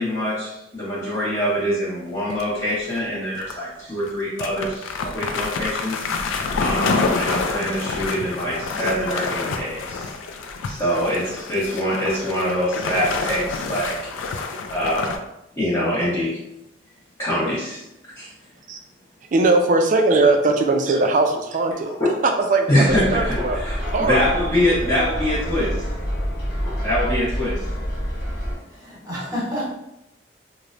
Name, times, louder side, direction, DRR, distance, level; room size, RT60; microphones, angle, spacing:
voice 1, 0.0-6.1 6.6-10.1 10.6-14.1 14.7-15.2 15.5-16.4 17.2-18.3 20.9-21.0 21.8-21.9 22.7-25.8 26.6-27.7, equal, 20° left, -10 dB, 0.7 m, -24 dB
sound 1, 2.3-3.0 3.3-3.5 4.0-4.1 4.4-15.2, left 4 dB, 90° left, 0.3 m, -27 dB
voice 2, 19.3-21.9 22.2-23.6 23.9-24.8, right 3 dB, 40° right, 5 dB, 0.3 m, -20 dB
sound 2, 22.9-28.5, equal, 55° left, 1.1 m, -27 dB
voice 3, 28.8-29.7, equal, 20° right, -6 dB, 0.9 m, -28 dB
3.0 x 2.0 x 2.5 m, 0.85 s
head